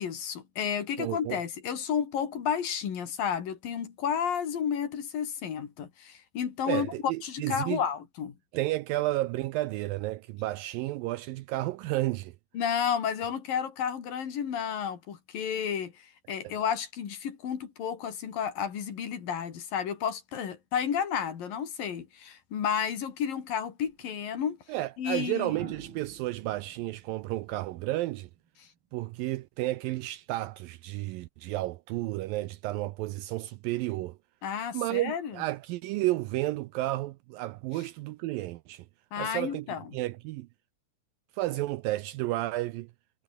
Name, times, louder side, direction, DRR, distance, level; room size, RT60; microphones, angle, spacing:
voice 1, 0.0-6.9 7.2-8.3 12.5-24.6 25.0-25.5 34.4-35.4 39.1-39.8, left 8 dB, 65° left, 4.4 m, -32 dB
voice 2, 1.0-1.4 6.7-7.8 8.5-12.3 16.4-16.5 24.7-28.3 28.9-34.2 34.7-38.9 39.2-39.7 39.9-40.5 41.3-42.9, right 17 dB, 80° right, 2.1 m, -32 dB
sound 1, 23.9-24.1 25.4-28.5 30.0-30.3, right 7 dB, 45° right, 1.8 m, -46 dB
omnidirectional pair, 4.5 m